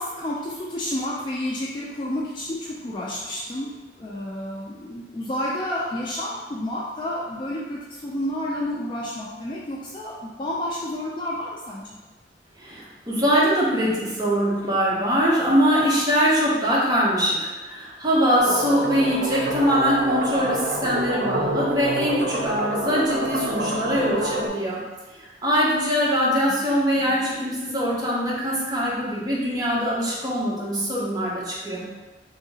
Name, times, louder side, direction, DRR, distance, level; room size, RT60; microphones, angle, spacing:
voice 1, 0.0-12.0 23.6-24.0 26.4-26.6, left 1 dB, 25° left, -5 dB, 0.3 m, -30 dB
voice 2, 12.6-24.8 25.1-31.9, equal, 20° right, -6 dB, 0.8 m, -22 dB
sound 1, 18.4-24.5, right 1 dB, 55° right, 0.5 m, -27 dB
2.7 x 2.7 x 2.7 m, 1.2 s
head